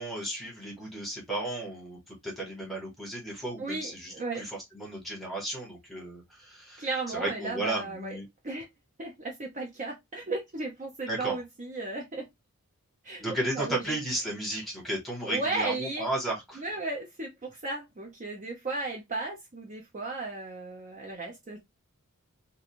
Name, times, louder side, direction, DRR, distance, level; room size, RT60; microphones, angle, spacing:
voice 1, 0.0-8.3 11.1-11.4 13.2-16.6, right 1 dB, ahead, 1.0 m, -34 dB
voice 2, 3.6-4.5 6.8-8.2 8.4-8.7 9.0-12.3 13.0-13.9 15.2-16.1 16.6-21.6, right 3 dB, 35° right, 0.6 m, -35 dB
2.5 x 2.2 x 2.9 m
head